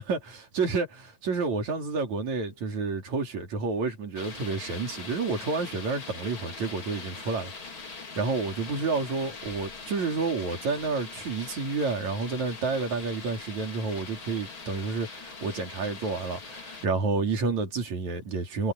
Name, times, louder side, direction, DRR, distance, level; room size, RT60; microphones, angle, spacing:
voice 1, 0.0-7.5 8.2-18.7, right 4 dB, 65° right, 4.8 m, -30 dB
sound 1, 4.2-16.9, left 4 dB, 40° left, 4.0 m, -42 dB
omnidirectional pair, 3.4 m